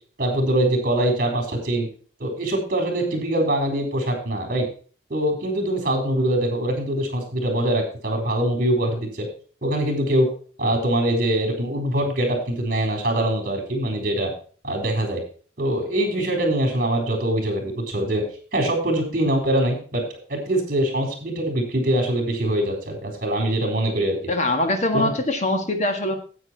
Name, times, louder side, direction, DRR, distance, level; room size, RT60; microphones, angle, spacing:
voice 1, 0.2-1.9 2.2-4.7 5.1-9.3 9.6-10.3 10.6-14.3 14.6-15.2 15.6-18.2 18.5-20.0 20.3-24.3 24.9-25.1, right 1 dB, 50° right, 2 dB, 3.9 m, -23 dB
voice 2, 24.3-26.2, left 1 dB, 40° left, 5 dB, 1.7 m, -23 dB
9.6 x 8.6 x 4.5 m, 0.41 s
head